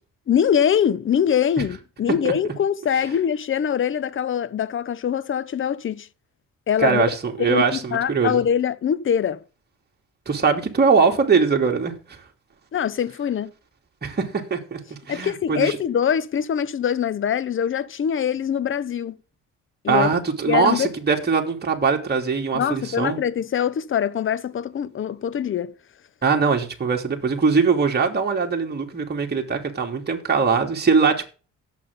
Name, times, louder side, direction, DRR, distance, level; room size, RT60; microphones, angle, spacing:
voice 1, 0.3-6.1 6.7-7.0 7.4-9.4 12.7-13.5 15.1-19.2 19.8-20.1 20.4-20.9 22.5-25.7, left 8 dB, 40° left, 0.8 m, -23 dB
voice 2, 6.8-8.4 10.3-12.2 14.0-14.8 15.1-15.8 19.9-23.2 26.2-31.2, right 5 dB, 35° right, 3.0 m, -21 dB
16.5 x 7.4 x 3.8 m
cardioid pair, 90°, 30 cm